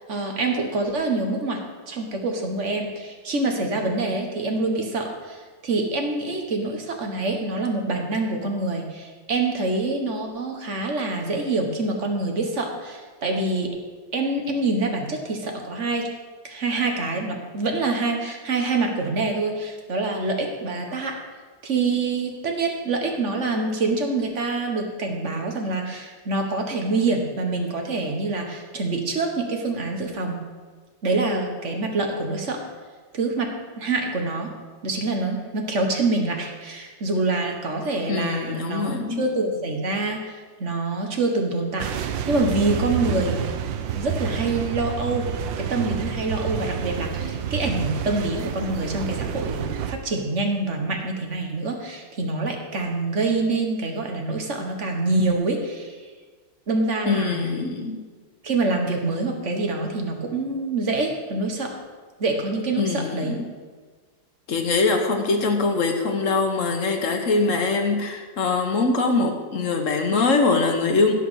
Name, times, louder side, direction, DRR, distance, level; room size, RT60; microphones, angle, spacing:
voice 1, 0.1-1.6 1.9-13.7 14.1-16.1 16.4-21.1 21.6-30.4 31.0-32.6 33.1-33.5 33.8-34.5 34.8-43.5 43.9-45.3 45.6-55.9 56.7-57.4 58.4-61.8 62.2-63.4, right 3 dB, 40° right, 3 dB, 1.7 m, -26 dB
voice 2, 38.1-39.2 57.1-58.0 62.7-63.4 64.5-71.1, left 3 dB, 45° left, 4 dB, 1.5 m, -23 dB
sound 1, 41.8-50.0, right 7 dB, 80° right, 1.5 m, -29 dB
16.0 x 5.5 x 6.4 m, 1.5 s
omnidirectional pair, 2.0 m